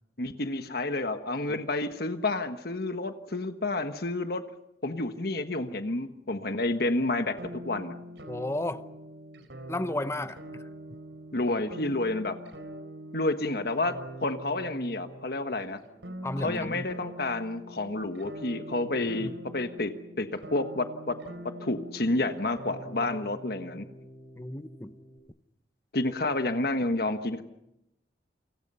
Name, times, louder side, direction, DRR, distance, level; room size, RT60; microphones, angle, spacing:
voice 1, 0.2-4.4 4.8-8.0 11.3-12.3 13.1-15.8 16.4-21.2 21.6-23.9 25.9-27.4, left 2 dB, 60° left, 1.4 m, -30 dB
sound 1, 7.4-25.2, equal, 85° right, 4.1 m, -44 dB
voice 2, 8.3-8.8 9.7-10.6 16.2-16.9 19.0-19.3 24.4-24.9, left 1 dB, 15° left, 0.8 m, -33 dB
29.5 x 25.5 x 5.6 m
head